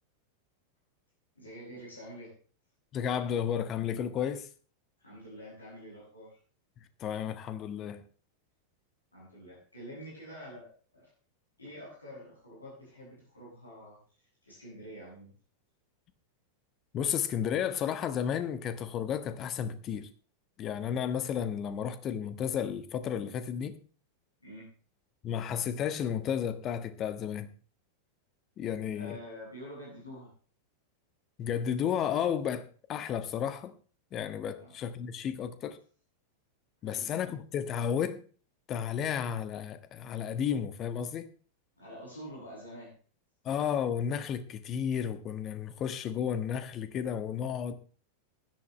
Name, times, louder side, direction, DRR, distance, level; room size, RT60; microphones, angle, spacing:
voice 1, 1.4-2.3 5.0-6.4 9.1-11.1 11.6-14.0 14.4-15.3 24.4-24.7 28.9-30.3 34.6-34.8 36.8-37.1 41.8-42.9, equal, 80° left, 7.6 m, -47 dB
voice 2, 2.9-4.5 7.0-8.0 16.9-20.1 20.6-23.8 25.2-27.5 28.6-29.2 31.4-33.7 34.1-35.8 36.8-38.2 38.7-41.3 43.4-47.7, left 8 dB, 30° left, 1.4 m, -32 dB
16.5 x 11.5 x 3.2 m
figure-of-eight pair, 90°, 0 cm